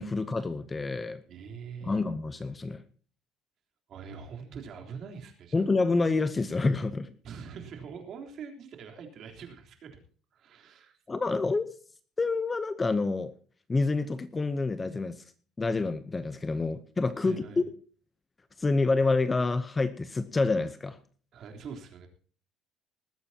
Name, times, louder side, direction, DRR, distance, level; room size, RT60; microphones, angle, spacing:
voice 1, 0.0-1.2 1.8-2.8 5.5-7.1 11.1-11.7 12.2-13.3 13.7-15.2 15.6-17.6 18.6-21.0, left 3 dB, 15° left, 12 dB, 0.7 m, -28 dB
voice 2, 1.3-2.0 3.9-5.7 7.2-10.0 10.3-11.0 17.2-17.6 21.3-22.1, right 6 dB, 40° right, 3 dB, 3.5 m, -43 dB
20.0 x 14.0 x 2.8 m, 0.43 s
cardioid pair, 170°, 0 cm